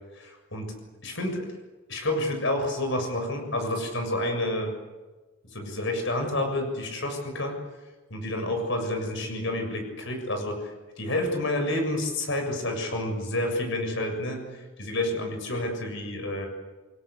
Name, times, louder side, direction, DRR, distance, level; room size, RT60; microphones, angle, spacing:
voice 1, 0.1-0.7 1.0-1.5 1.9-4.7 5.4-7.6 8.1-16.5, left 1 dB, 60° left, 4 dB, 7.0 m, -29 dB
29.0 x 21.5 x 8.2 m, 1.2 s
head